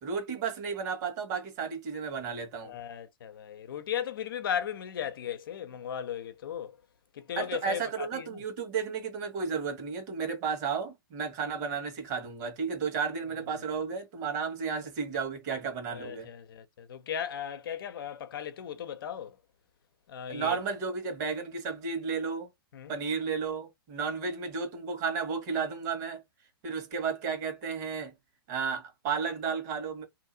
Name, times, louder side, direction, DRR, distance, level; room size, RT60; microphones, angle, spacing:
voice 1, 0.0-2.7 7.3-16.3 20.3-22.5 22.9-26.2 26.6-28.1 28.5-30.0, right 5 dB, 45° right, 1.5 m, -33 dB
voice 2, 2.6-6.8 7.1-8.4 15.9-19.4 20.1-20.6 22.7-22.9, left 9 dB, 65° left, 0.7 m, -36 dB
2.8 x 2.6 x 2.6 m
hypercardioid pair, 120°, 13 cm